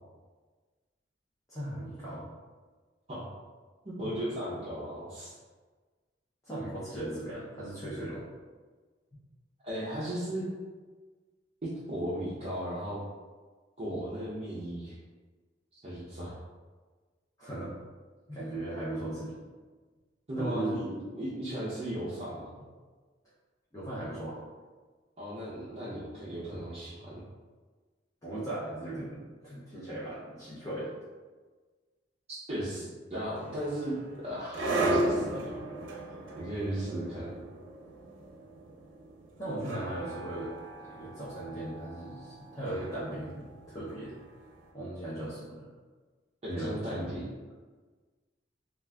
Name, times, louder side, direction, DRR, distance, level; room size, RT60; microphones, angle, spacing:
voice 1, 1.5-2.2 4.0-4.1 6.4-8.2 17.4-17.7 18.3-19.3 20.4-20.8 23.7-24.4 28.2-30.9 39.4-40.5 40.8-44.2 44.7-45.7 46.5-47.0, right 1 dB, 20° left, -10 dB, 0.6 m, -37 dB
voice 2, 3.8-5.3 9.6-10.4 11.6-13.0 13.8-15.0 15.8-16.3 20.3-22.5 25.2-27.1 32.3-35.5 36.4-37.5 46.4-47.2, right 1 dB, 35° right, -10 dB, 0.6 m, -36 dB
sound 1, 33.4-44.5, right 2 dB, 85° right, 0.5 m, -36 dB
2.4 x 2.3 x 3.3 m, 1.4 s
head